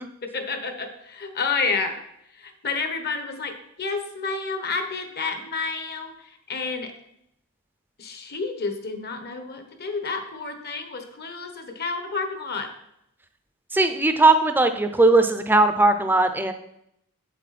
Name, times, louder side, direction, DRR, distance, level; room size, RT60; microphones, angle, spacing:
voice 1, 0.2-1.9 2.4-6.1 6.5-6.9 8.0-12.7, left 4 dB, 45° left, 6 dB, 1.1 m, -30 dB
voice 2, 13.7-16.5, right 2 dB, 10° right, 8 dB, 0.5 m, -18 dB
8.1 x 7.7 x 4.2 m, 0.77 s
head